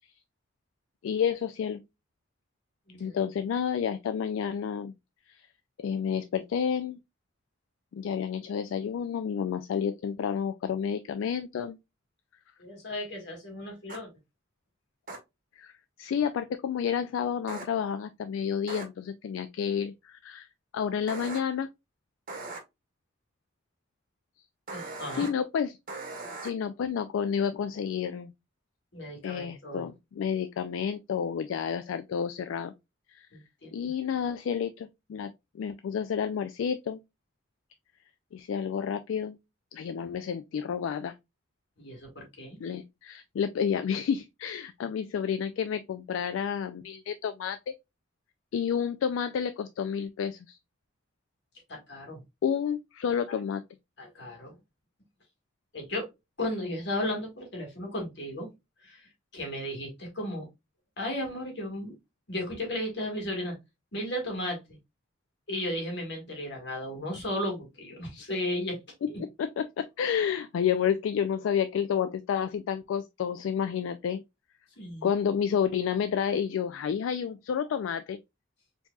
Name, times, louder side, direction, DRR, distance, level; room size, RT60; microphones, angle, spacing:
voice 1, 1.0-1.8 3.0-4.9 5.3-5.4 5.8-7.0 7.9-11.8 15.6-15.7 16.0-20.5 20.7-21.7 25.1-25.8 26.4-28.3 29.2-32.7 33.1-33.3 33.7-37.0 38.3-39.4 39.7-41.1 42.6-47.7 48.5-50.6 52.4-53.6 68.1-68.2 69.4-74.2 75.0-78.2, left 7 dB, 75° left, 0.3 m, -30 dB
voice 2, 12.6-14.1 24.7-25.3 28.9-29.9 33.3-33.9 41.8-42.6 51.7-52.2 53.3-53.4 54.0-54.6 55.7-56.1 56.4-58.5 58.8-60.5 61.0-61.9 62.3-63.6 63.9-64.6 65.5-69.2 74.8-75.1, left 1 dB, 60° left, 1.6 m, -35 dB
sound 1, 13.9-14.0 15.1-15.2 17.5-17.7 18.7-18.8 21.1-21.4 22.3-22.6 24.7-25.3 25.9-26.5, right 3 dB, 45° right, 0.8 m, -39 dB
4.5 x 2.7 x 2.2 m
head